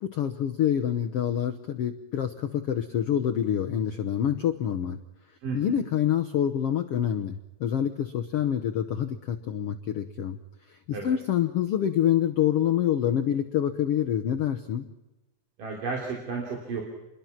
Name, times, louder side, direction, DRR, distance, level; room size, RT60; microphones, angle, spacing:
voice 1, 0.0-5.0 5.5-10.4 10.7-14.9, left 10 dB, 75° left, 6 dB, 1.3 m, -26 dB
voice 2, 5.4-5.8 10.9-11.1 15.6-16.8, right 4 dB, 65° right, -1 dB, 4.8 m, -33 dB
28.5 x 22.0 x 5.9 m, 1.0 s
omnidirectional pair, 4.1 m